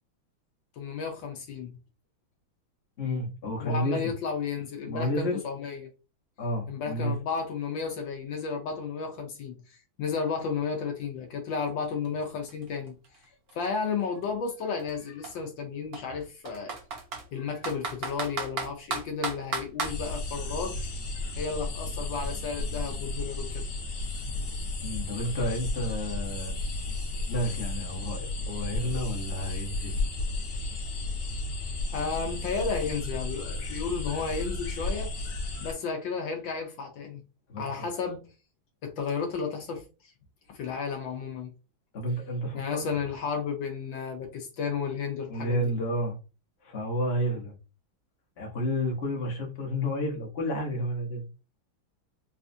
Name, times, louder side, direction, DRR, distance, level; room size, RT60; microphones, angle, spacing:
voice 1, 0.8-1.8 3.6-5.9 6.7-13.2 13.5-16.8 17.3-20.8 21.1-23.7 31.9-35.1 35.6-37.2 37.6-38.3 38.8-40.1 40.5-41.5 42.5-45.6, left 5 dB, 70° left, 1.3 m, -33 dB
voice 2, 3.0-4.1 4.8-5.4 6.4-7.1 24.8-26.6 27.3-30.0 37.5-37.9 41.9-42.9 45.3-46.2 46.6-47.5 48.4-51.2, equal, 40° left, 1.0 m, -31 dB
Computer keyboard, 11.7-11.8 12.0-14.0 14.8-14.9 15.2-15.3 15.9-17.2 17.6-20.0, right 4 dB, 55° right, 1.1 m, -34 dB
sound 1, 19.8-35.7, left 2 dB, 55° left, 1.3 m, -33 dB
4.2 x 2.3 x 2.6 m
omnidirectional pair, 2.3 m